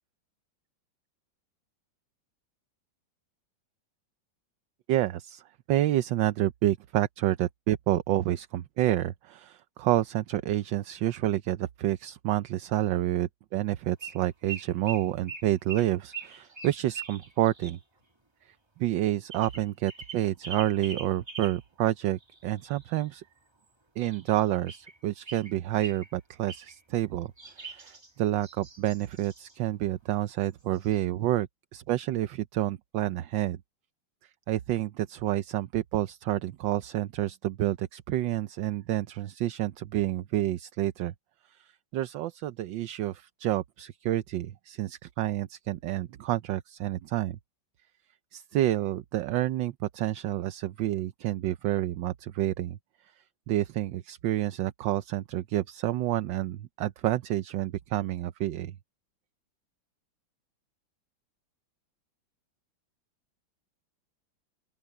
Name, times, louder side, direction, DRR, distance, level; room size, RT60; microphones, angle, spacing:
voice 1, 4.9-5.4 5.7-17.8 18.5-18.6 18.8-23.2 24.0-33.6 34.5-41.1 41.5-47.4 48.3-52.8 53.5-58.7, right 14 dB, 75° right, 1.4 m, -29 dB
sound 1, 14.0-14.2 14.5-17.8 19.3-21.6 22.2-23.2 24.0-25.0 25.3-26.1 26.5-26.8 27.4-29.6 30.4-30.5 30.7-31.0, right 6 dB, 15° right, 1.5 m, -43 dB
open air
omnidirectional pair, 2.1 m